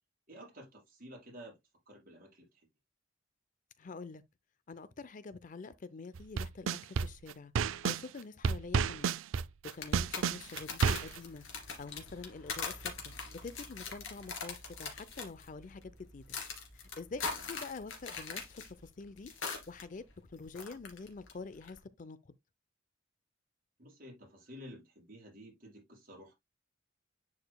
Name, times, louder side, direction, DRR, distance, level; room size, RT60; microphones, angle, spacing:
voice 1, 0.3-1.6 1.8-2.7 17.3-17.5 23.8-26.3, equal, 45° right, 4.9 m, -52 dB
voice 2, 3.8-4.2 4.7-7.5 7.8-9.1 9.7-11.4 11.8-16.4 17.0-19.3 19.7-20.0 20.3-22.3, left 4 dB, 40° left, 0.5 m, -46 dB
sound 1, 6.2-8.0 8.4-11.2, right 5 dB, 80° right, 0.4 m, -30 dB
sound 2, 9.7-19.8 20.1-21.3 21.6-21.8, left 5 dB, 80° left, 2.5 m, -42 dB
10.5 x 5.0 x 2.2 m
head